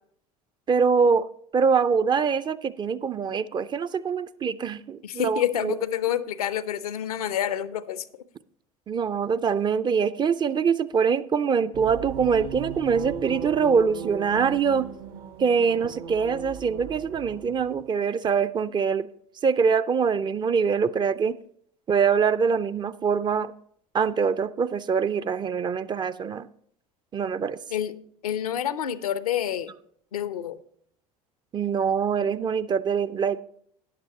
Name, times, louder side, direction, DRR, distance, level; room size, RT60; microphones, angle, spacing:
voice 1, 0.7-1.3 1.5-5.8 8.9-14.9 15.4-19.1 19.4-21.4 21.9-23.5 23.9-26.5 27.1-27.6 31.5-33.4, right 6 dB, 25° right, 13 dB, 0.4 m, -24 dB
voice 2, 5.0-8.0 27.7-28.0 28.2-29.7 30.1-30.6, left 10 dB, 75° left, 15 dB, 0.6 m, -28 dB
sound 1, 11.7-17.9, right 6 dB, 55° right, 0.8 m, -37 dB
13.5 x 9.3 x 2.8 m, 0.66 s
figure-of-eight pair, 70°, 19 cm